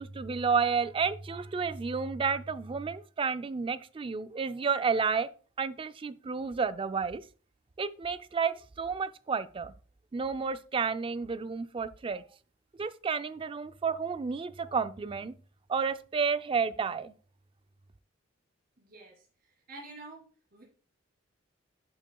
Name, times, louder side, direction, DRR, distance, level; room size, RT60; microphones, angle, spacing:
voice 1, 0.0-5.3 5.6-7.2 7.8-9.7 10.1-12.2 12.8-15.3 15.7-17.1, right 5 dB, 25° right, 0.3 m, -31 dB
voice 2, 18.8-20.2 20.5-20.6, right 2 dB, 50° right, 3.4 m, -49 dB
11.0 x 6.0 x 2.3 m
head